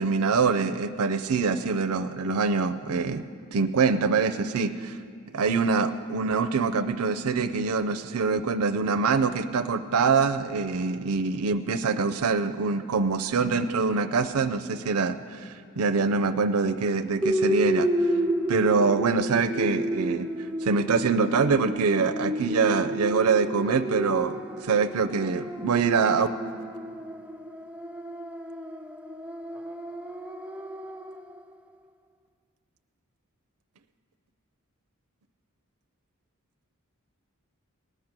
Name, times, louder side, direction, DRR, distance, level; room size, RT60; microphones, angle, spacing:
voice 1, 0.0-3.2 3.5-5.0 5.3-17.9 18.5-20.3 20.6-26.3, right 4 dB, 90° right, 9 dB, 0.5 m, -24 dB
sound 1, 17.2-31.4, equal, 5° right, 0.3 m, -31 dB
19.5 x 8.0 x 6.0 m, 2.1 s
head